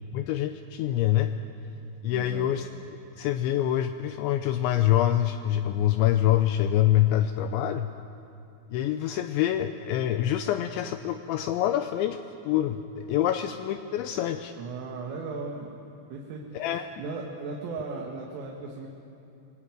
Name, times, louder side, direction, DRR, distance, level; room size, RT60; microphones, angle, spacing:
voice 1, 0.1-1.3 2.0-2.7 3.2-7.9 8.7-12.2 12.4-14.5 16.5-16.9, left 12 dB, 80° left, 8 dB, 2.7 m, -25 dB
voice 2, 2.1-2.5 14.6-15.8 16.1-18.9, right 4 dB, 80° right, -1 dB, 4.5 m, -37 dB
25.5 x 19.5 x 9.1 m, 2.7 s
omnidirectional pair, 5.8 m